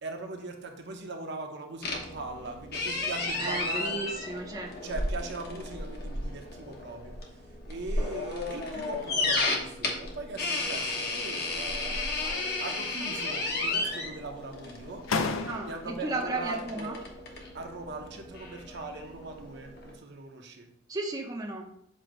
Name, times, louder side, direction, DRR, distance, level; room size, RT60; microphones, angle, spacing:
voice 1, 0.0-4.1 4.8-12.3 12.6-17.0 17.5-20.7, right 3 dB, 60° right, 4 dB, 0.8 m, -40 dB
sound 1, 1.8-19.9, left 2 dB, 55° left, 1.1 m, -34 dB
voice 2, 3.4-4.9 15.5-17.0 20.9-21.7, right 2 dB, 20° right, 0 dB, 0.6 m, -34 dB
sound 2, 11.2-11.8 12.2-13.0 13.2-14.0 14.6-14.7 15.1-16.0, left 4 dB, 85° left, 0.6 m, -35 dB
7.5 x 2.7 x 4.9 m, 0.70 s
head